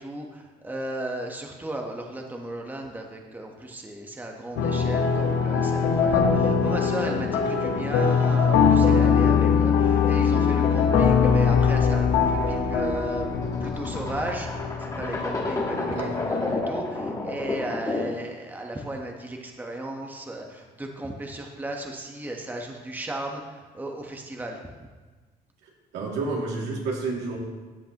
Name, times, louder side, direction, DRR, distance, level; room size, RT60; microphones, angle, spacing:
voice 1, 0.0-13.3 13.6-24.6, right 1 dB, 10° right, 1 dB, 1.1 m, -35 dB
sound 1, 4.6-16.5, left 6 dB, 90° left, 1.2 m, -22 dB
sound 2, 11.9-18.3, left 2 dB, 20° left, 1.5 m, -32 dB
voice 2, 15.8-16.1 25.9-27.4, right 3 dB, 80° right, -3 dB, 2.4 m, -30 dB
13.5 x 8.1 x 3.0 m, 1.3 s
cardioid pair, 110°, 17 cm